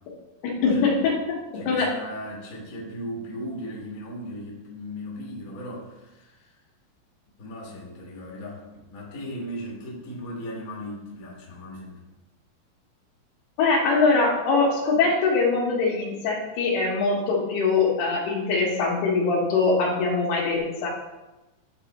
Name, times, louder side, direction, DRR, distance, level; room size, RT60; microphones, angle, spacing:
voice 1, 0.4-1.9 13.6-20.9, left 4 dB, 85° left, -2 dB, 3.3 m, -23 dB
voice 2, 1.5-6.6 7.4-12.0, equal, 50° left, -4 dB, 1.0 m, -37 dB
10.0 x 3.4 x 4.1 m, 1.0 s
omnidirectional pair, 4.5 m